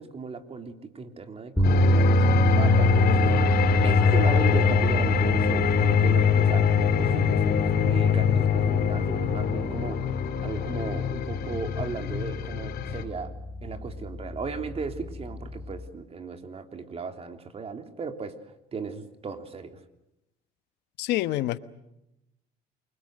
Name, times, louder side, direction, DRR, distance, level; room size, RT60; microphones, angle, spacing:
voice 1, 0.0-3.5 3.8-10.1 10.4-13.3 13.6-19.8, right 5 dB, 35° right, 7 dB, 3.3 m, -36 dB
sound 1, 1.6-13.0, left 9 dB, 65° left, 3.7 m, -24 dB
sound 2, 1.6-15.8, right 1 dB, 5° left, 4.0 m, -27 dB
voice 2, 21.0-21.6, left 16 dB, 90° left, 14 dB, 1.2 m, -26 dB
28.5 x 24.5 x 6.5 m, 0.85 s
cardioid pair, 110°, 17 cm